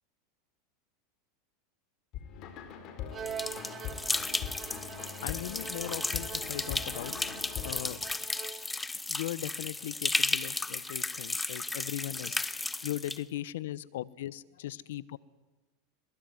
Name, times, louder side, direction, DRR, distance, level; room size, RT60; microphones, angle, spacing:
sound 1, 2.1-8.0, left 8 dB, 50° left, 4.8 m, -42 dB
Bowed string instrument, 3.1-8.8, right 8 dB, 30° right, 1.2 m, -44 dB
sound 2, 3.3-13.2, left 3 dB, 10° left, 1.0 m, -34 dB
voice 1, 5.2-7.1 7.6-8.0 9.1-15.2, left 14 dB, 80° left, 20 dB, 1.0 m, -39 dB
22.5 x 21.0 x 9.6 m, 1.2 s
hypercardioid pair, 110°, 0 cm